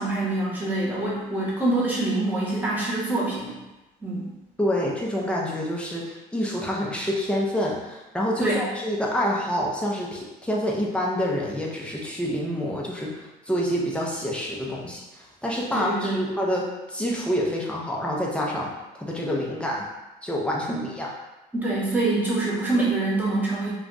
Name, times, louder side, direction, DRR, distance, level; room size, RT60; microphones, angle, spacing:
voice 1, 0.0-3.6 4.0-4.3 8.4-8.6 15.7-16.2 20.7-20.8 21.5-23.7, right 2 dB, 10° right, -7 dB, 1.1 m, -25 dB
voice 2, 4.6-19.8 20.2-21.1, equal, 5° left, -3 dB, 0.6 m, -27 dB
2.4 x 2.3 x 3.9 m, 1.0 s
cardioid pair, 110°, 17 cm